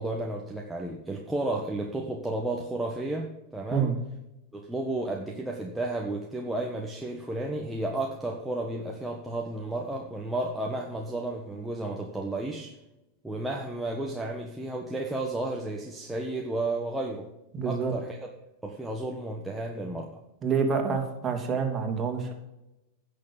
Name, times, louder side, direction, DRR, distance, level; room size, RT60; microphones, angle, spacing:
voice 1, 0.0-3.9 4.5-12.7 13.2-17.3 17.6-18.2 18.6-20.1, right 2 dB, 5° right, -1 dB, 1.4 m, -32 dB
voice 2, 17.5-17.9 20.4-22.3, right 6 dB, 25° right, 2 dB, 2.9 m, -27 dB
10.5 x 6.8 x 7.0 m, 0.95 s
hypercardioid pair, 125°, 0 cm